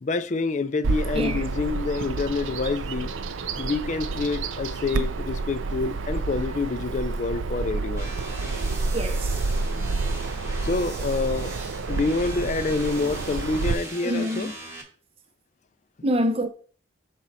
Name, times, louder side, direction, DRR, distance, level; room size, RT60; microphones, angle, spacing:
voice 1, 0.0-3.1 3.6-8.2 10.6-11.6 11.9-14.5, left 3 dB, 40° left, 0.3 m, -27 dB
Bird vocalization bird call bird song, 0.8-13.7, right 3 dB, 80° right, 0.5 m, -29 dB
voice 2, 1.1-1.5 8.9-9.4 14.0-14.5 16.0-16.5, equal, 30° right, 0.6 m, -26 dB
sound 1, 8.0-14.8, right 2 dB, 15° right, 0.9 m, -39 dB
6.2 x 4.2 x 4.0 m
head